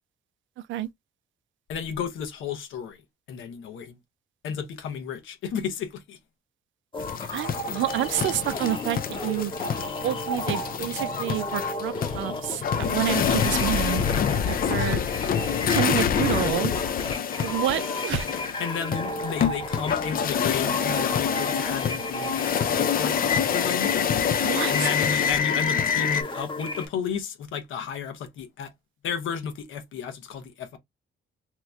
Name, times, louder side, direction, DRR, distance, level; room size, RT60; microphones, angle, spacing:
voice 1, 1.7-3.0 3.3-4.0 4.4-6.2 14.4-15.0 18.6-23.9 24.7-28.7 29.0-30.8, left 7 dB, 80° left, 0.9 m, -33 dB
sound 1, 6.9-26.9, left 2 dB, 25° left, 0.9 m, -34 dB
sound 2, 7.0-26.2, left 8 dB, 45° left, 0.5 m, -27 dB
voice 2, 7.3-9.5 10.0-14.0 14.4-15.0 15.7-16.7 17.4-18.3 24.4-24.9, right 12 dB, 75° right, 0.5 m, -28 dB
3.0 x 2.1 x 3.5 m
cardioid pair, 90°, 20 cm